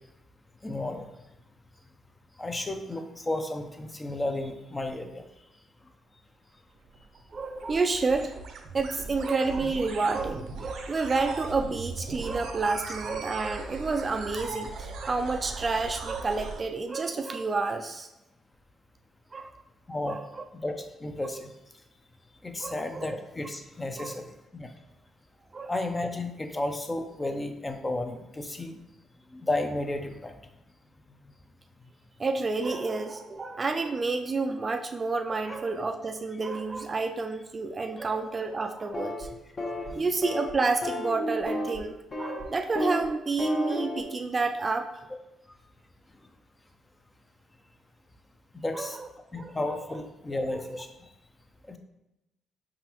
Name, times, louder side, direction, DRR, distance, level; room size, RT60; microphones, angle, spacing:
voice 1, 0.6-1.1 2.4-5.2 19.9-20.2 20.5-21.5 22.4-24.7 25.7-28.8 29.3-30.3 39.9-40.0 45.5-45.6 48.5-49.0 49.3-50.9 51.7-51.8, left 2 dB, 20° left, 6 dB, 0.5 m, -33 dB
sound 1, 6.8-16.6, right 4 dB, 75° right, 0.6 m, -39 dB
voice 2, 7.3-8.3 8.7-18.1 19.3-19.6 20.1-20.4 22.6-23.1 24.0-24.2 25.5-25.7 32.2-39.3 39.6-44.9 48.7-49.1 49.4-50.0, right 3 dB, 30° right, 6 dB, 0.3 m, -30 dB
sound 2, 38.9-39.2 39.6-39.9 40.2-40.5 40.8-41.8 42.1-42.4 42.7-43.1 43.4-44.0, left 1 dB, 40° left, 1.0 m, -31 dB
4.8 x 3.7 x 2.9 m, 0.92 s
cardioid pair, 90°, 0 cm